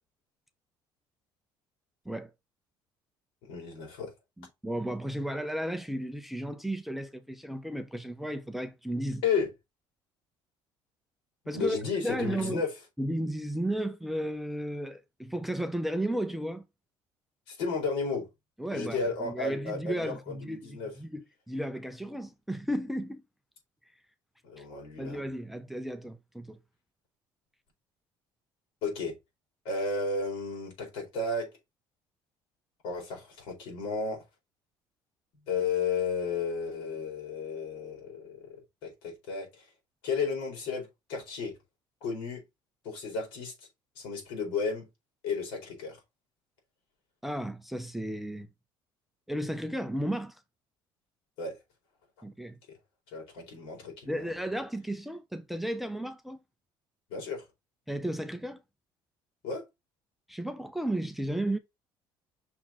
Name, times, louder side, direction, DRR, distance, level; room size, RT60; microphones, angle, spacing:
voice 1, 3.4-4.1 9.2-9.5 11.5-12.7 17.5-18.3 18.7-20.9 24.4-25.2 28.8-29.1 29.6-31.5 32.8-34.2 35.5-38.5 38.8-39.6 40.0-41.5 42.0-42.4 42.8-43.5 44.0-44.9 45.2-46.0 51.4-51.6 53.1-54.2 57.1-57.4 59.4-59.6, left 4 dB, 80° left, 4.2 m, -33 dB
voice 2, 4.4-9.2 11.5-12.6 13.0-16.6 18.6-23.2 24.6-24.7 25.0-26.6 47.2-48.5 49.3-50.4 52.2-52.6 54.1-56.4 57.9-58.6 60.3-61.6, right 1 dB, ahead, 0.5 m, -34 dB
6.0 x 4.4 x 4.3 m
cardioid pair, 175°, 9 cm